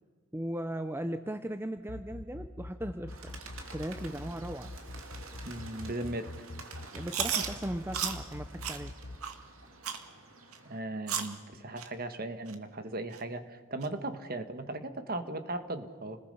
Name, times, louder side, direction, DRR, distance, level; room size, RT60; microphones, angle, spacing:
voice 1, 0.3-3.3 3.7-4.7 6.9-8.9, right 1 dB, 10° right, 9 dB, 0.6 m, -37 dB
sound 1, 1.8-9.2, left 2 dB, 55° left, 0.9 m, -43 dB
Bird, 3.1-10.8, right 3 dB, 70° right, 2.6 m, -50 dB
voice 2, 5.4-6.3 10.6-16.2, right 2 dB, 45° right, 9 dB, 1.6 m, -37 dB
Chewing mastication, 7.1-7.5 7.9-8.2 8.6-8.8 9.2-9.3 9.8-10.0 10.5-10.6 11.1-11.3 11.8-11.9 12.5-12.6 13.1-13.2 13.8-13.9, right 8 dB, 90° right, 2.0 m, -33 dB
29.5 x 20.5 x 5.5 m, 1.5 s
head